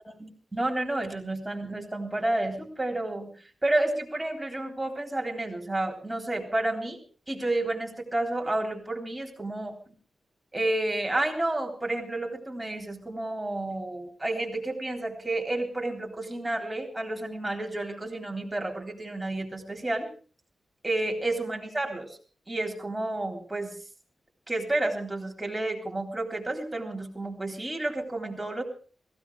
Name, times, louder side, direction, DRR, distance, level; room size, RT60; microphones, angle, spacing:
voice 1, 0.2-3.3 3.6-7.0 7.3-9.8 10.5-20.1 20.8-22.2 22.5-23.7 24.5-28.6, right 2 dB, 15° right, 2 dB, 3.8 m, -30 dB
17.0 x 16.0 x 4.8 m, 0.39 s
wide cardioid pair, 115°, 0 cm